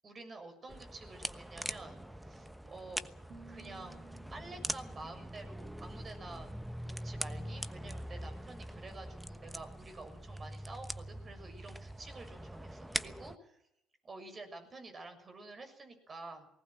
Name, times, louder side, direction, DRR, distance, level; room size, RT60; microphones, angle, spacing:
voice 1, 0.0-2.0 2.2-3.1 3.5-4.0 4.3-13.6 14.0-16.5, right 2 dB, 35° right, 6 dB, 6.8 m, -49 dB
sound 1, 0.7-13.4, right 1 dB, 5° right, 1.2 m, -43 dB
sound 2, 1.8-2.9 3.2-6.2, right 4 dB, 55° right, 7.1 m, -59 dB
20.0 x 18.5 x 7.8 m, 0.81 s
hypercardioid pair, 60°, 0 cm